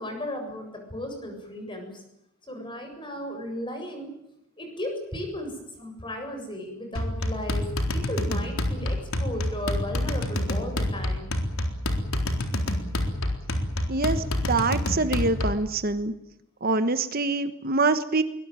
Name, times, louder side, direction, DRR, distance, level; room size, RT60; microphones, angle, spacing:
voice 1, 0.0-2.0 2.5-4.1 4.6-11.3, left 1 dB, 25° left, 5 dB, 7.5 m, -35 dB
sound 1, 7.0-15.7, left 1 dB, 80° left, 3.9 m, -28 dB
voice 2, 13.9-16.1 16.6-18.2, right 3 dB, 45° right, 10 dB, 1.3 m, -25 dB
22.5 x 21.5 x 9.2 m, 0.81 s
head